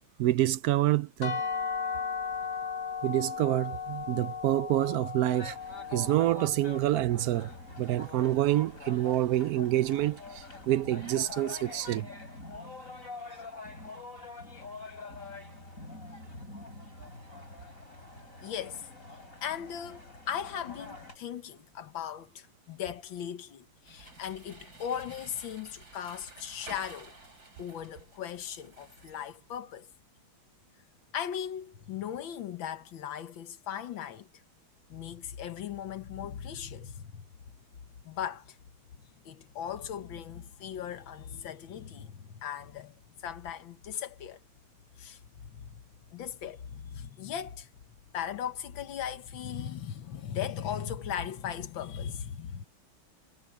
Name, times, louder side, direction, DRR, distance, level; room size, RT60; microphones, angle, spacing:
voice 1, 0.2-1.4 3.0-5.6 5.9-7.5 7.8-12.1, right 14 dB, 85° right, 0.8 m, -27 dB
sound 1, 1.2-7.0, left 6 dB, 60° left, 2.2 m, -36 dB
sound 2, 5.3-21.2, left 3 dB, 40° left, 7.5 m, -45 dB
voice 2, 18.4-18.8 19.4-27.1 27.6-29.9 31.1-34.3 34.9-37.3 38.0-38.6 39.3-42.9 43.2-44.4 45.0-45.8 46.1-47.7 48.1-52.7, left 9 dB, 75° left, 1.9 m, -38 dB
sound 3, 23.9-29.2, right 2 dB, 50° right, 5.9 m, -51 dB
omnidirectional pair, 2.2 m